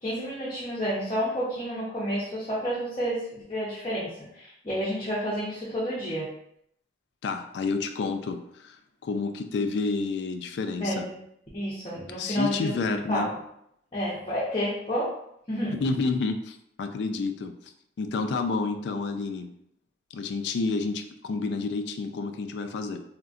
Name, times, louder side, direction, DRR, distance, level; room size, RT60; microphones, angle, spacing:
voice 1, 0.0-6.3 10.8-11.1 11.5-13.3 13.9-15.1 15.5-15.7, equal, 30° left, -8 dB, 0.6 m, -30 dB
voice 2, 7.2-11.1 12.2-13.3 15.7-17.7 18.0-19.5 20.1-23.0, left 4 dB, 70° left, 6 dB, 0.3 m, -30 dB
3.6 x 2.1 x 2.4 m, 0.75 s
head